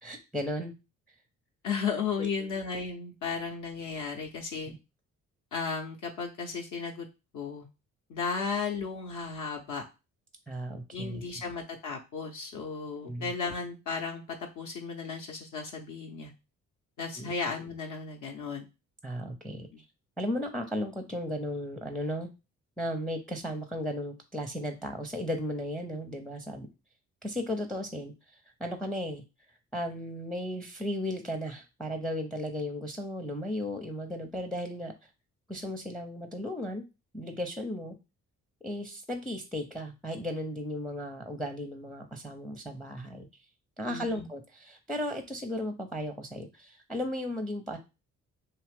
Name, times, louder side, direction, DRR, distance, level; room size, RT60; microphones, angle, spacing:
voice 1, 0.0-0.7 1.1-1.2 2.2-2.5 4.7-4.8 10.5-11.2 13.0-13.3 17.2-17.3 19.0-19.7 20.2-22.3 22.8-26.7 27.2-29.2 29.5-34.9 35.5-36.8 37.1-37.9 38.6-43.3 43.8-47.8, left 1 dB, ahead, 6 dB, 0.5 m, -35 dB
voice 2, 1.6-4.7 5.5-7.1 7.3-7.7 8.1-9.8 10.9-16.3 17.0-18.7 19.7-19.8 43.9-44.3, left 5 dB, 50° left, 1 dB, 0.7 m, -35 dB
2.7 x 2.4 x 3.4 m, 0.28 s
hypercardioid pair, 45°, 38 cm